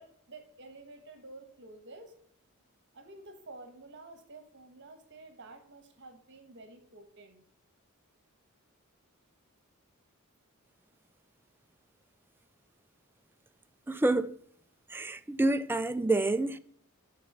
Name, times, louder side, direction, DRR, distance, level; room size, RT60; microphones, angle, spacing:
voice 1, 0.0-2.1 2.9-7.4, right 2 dB, 55° right, 1.4 m, -50 dB
voice 2, 13.9-14.4 14.9-16.6, right 2 dB, 10° right, 0.3 m, -28 dB
6.6 x 5.8 x 6.8 m
head